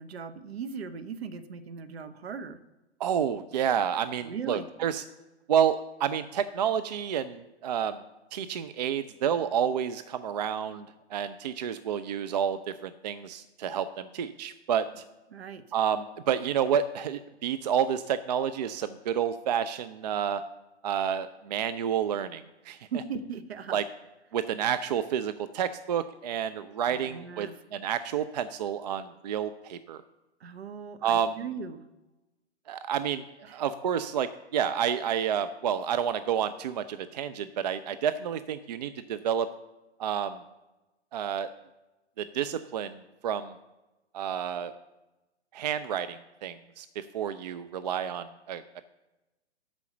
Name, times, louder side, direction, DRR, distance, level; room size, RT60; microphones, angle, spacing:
voice 1, 0.0-2.6 4.2-4.7 15.3-15.6 22.9-23.8 26.9-27.5 30.4-31.8 33.4-33.6, right 6 dB, 65° right, 9 dB, 0.9 m, -38 dB
voice 2, 3.0-5.0 5.5-8.0 8.3-15.0 15.7-20.4 20.8-22.8 23.7-23.8 24.3-30.0 31.0-31.4 32.7-33.2 33.5-39.5 40.0-40.4 41.1-41.5 42.2-43.5 44.1-44.7 45.5-48.6, right 8 dB, 40° right, 12 dB, 0.4 m, -29 dB
8.4 x 6.2 x 6.9 m, 1.0 s
figure-of-eight pair, 125°, 34 cm